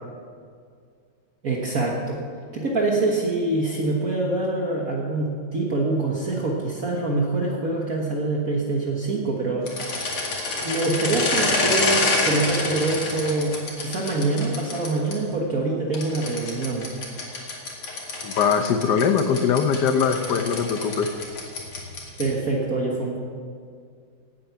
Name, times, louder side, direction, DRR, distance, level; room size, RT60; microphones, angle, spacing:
voice 1, 1.4-2.2 2.5-9.7 10.6-16.9 22.2-23.2, right 2 dB, 45° right, -1 dB, 1.6 m, -25 dB
sound 1, 9.6-15.1 15.9-22.4, left 2 dB, 85° left, 3.0 m, -27 dB
voice 2, 18.2-21.1, left 6 dB, 60° left, 8 dB, 1.3 m, -21 dB
17.5 x 8.5 x 5.8 m, 2.1 s
omnidirectional pair, 2.3 m